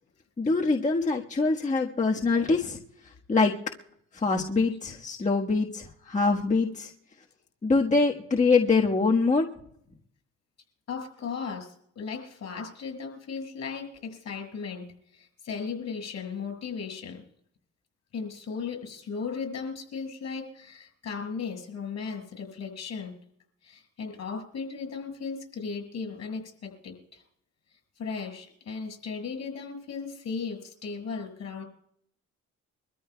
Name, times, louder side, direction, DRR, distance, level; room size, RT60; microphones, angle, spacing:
voice 1, 0.4-3.5 4.1-6.9 7.6-9.5, left 3 dB, 25° left, 0 dB, 1.4 m, -24 dB
voice 2, 10.9-14.9 15.1-17.2 18.1-23.2 23.6-27.2 28.0-31.6, left 5 dB, 60° left, 5 dB, 5.4 m, -36 dB
24.0 x 14.0 x 2.3 m, 0.69 s
cardioid pair, 90°, 30 cm